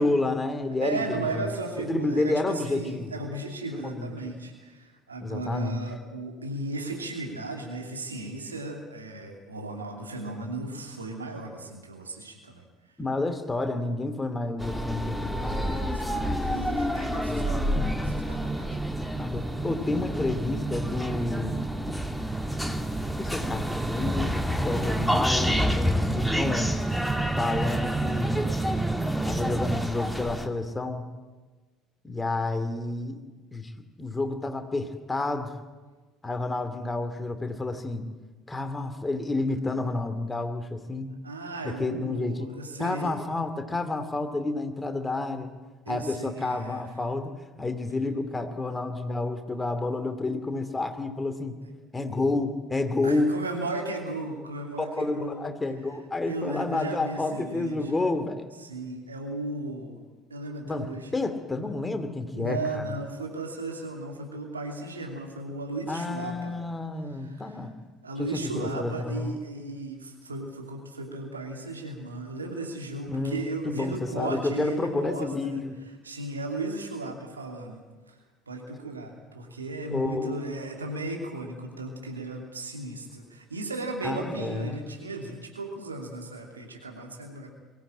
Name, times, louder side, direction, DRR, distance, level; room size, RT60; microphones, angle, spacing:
voice 1, 0.0-1.5 1.8-3.2 3.7-4.3 5.2-5.8 13.0-15.7 17.1-17.5 19.2-21.7 23.2-26.7 27.4-28.4 29.2-31.1 32.0-33.2 33.5-33.7 34.0-35.6 36.2-38.1 38.5-41.1 41.6-42.5 42.8-45.5 45.9-47.3 47.6-51.6 51.9-53.3 54.8-58.5 60.6-62.9 65.9-67.7 68.2-69.4 73.1-75.8 79.9-80.4 84.0-84.8, left 2 dB, 15° left, 8 dB, 2.6 m, -30 dB
voice 2, 0.8-12.6 15.4-18.7 41.2-43.3 45.8-46.8 48.6-48.7 53.0-55.5 56.2-57.9 58.6-60.0 60.3-61.1 62.3-66.6 67.2-67.6 68.0-75.6 76.0-77.8 78.1-78.2 78.5-87.5, right 2 dB, 85° right, 2 dB, 2.8 m, -36 dB
sound 1, 14.6-30.5, equal, ahead, 2.0 m, -30 dB
sound 2, 17.7-29.9, right 3 dB, 20° right, 0.6 m, -32 dB
23.0 x 15.5 x 8.8 m, 1.3 s
figure-of-eight pair, 60°, 0 cm